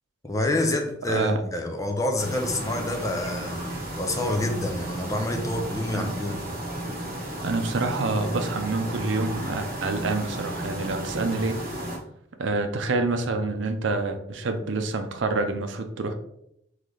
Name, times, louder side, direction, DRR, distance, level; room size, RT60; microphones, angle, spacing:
voice 1, 0.2-3.6 4.0-6.4, left 1 dB, 20° left, 0.6 m, -27 dB
voice 2, 1.1-1.4 5.9-6.1 7.4-11.6 12.4-16.1, right 3 dB, 85° right, 0.5 m, -27 dB
sound 1, 2.2-12.0, right 1 dB, 50° right, 1.2 m, -33 dB
3.8 x 3.2 x 3.2 m
head